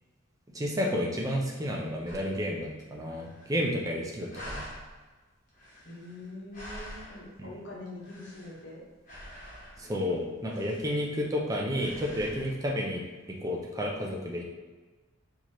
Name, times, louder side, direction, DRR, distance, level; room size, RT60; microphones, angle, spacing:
voice 1, 0.5-4.6 7.4-7.5 9.8-13.0 13.4-14.4, equal, 15° right, -1 dB, 0.4 m, -31 dB
sound 1, 2.1-2.4 2.8-2.9 3.1-3.9 4.3-4.9 5.5-7.4 7.9-8.7 9.0-9.9 10.5-11.4 11.7-12.5, equal, 40° left, 1.2 m, -46 dB
voice 2, 5.8-8.8, left 2 dB, 60° left, -4 dB, 1.1 m, -44 dB
4.5 x 2.9 x 2.9 m, 1.3 s
head